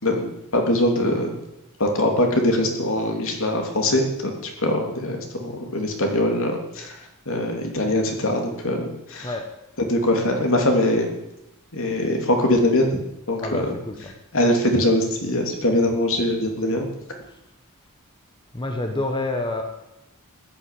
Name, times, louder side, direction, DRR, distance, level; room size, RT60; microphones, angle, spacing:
voice 1, 0.0-1.3 1.8-6.9 7.2-9.3 9.8-11.1 11.7-13.0 13.3-13.7 14.3-16.9, left 1 dB, 65° left, 2 dB, 3.3 m, -22 dB
voice 2, 13.4-14.1 18.5-19.6, left 2 dB, 20° left, 4 dB, 1.4 m, -28 dB
14.5 x 11.0 x 8.7 m, 0.90 s
head